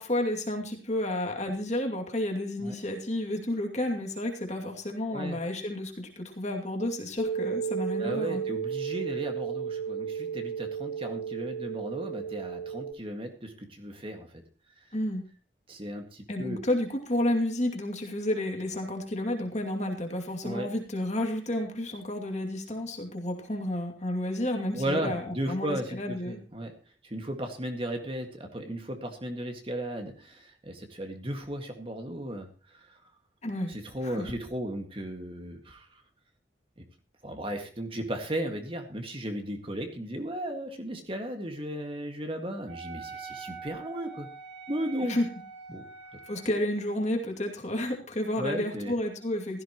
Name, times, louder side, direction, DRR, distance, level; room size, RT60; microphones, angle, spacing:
voice 1, 0.0-8.4 14.9-15.2 16.3-26.4 33.4-33.7 34.0-34.3 45.1-45.3 46.3-49.6, left 1 dB, 35° left, 2 dB, 2.5 m, -31 dB
sound 1, 7.2-12.9, right 7 dB, 60° left, 3.7 m, -33 dB
voice 2, 8.0-14.4 15.7-16.6 20.4-20.7 24.7-26.7 27.0-33.0 33.7-35.9 37.2-44.3 44.7-45.2 45.7-45.8 48.4-48.9, right 1 dB, 30° right, 4 dB, 1.9 m, -35 dB
Wind instrument woodwind instrument, 42.7-46.6, right 5 dB, 85° right, 5.4 m, -44 dB
16.0 x 14.5 x 3.0 m, 0.35 s
head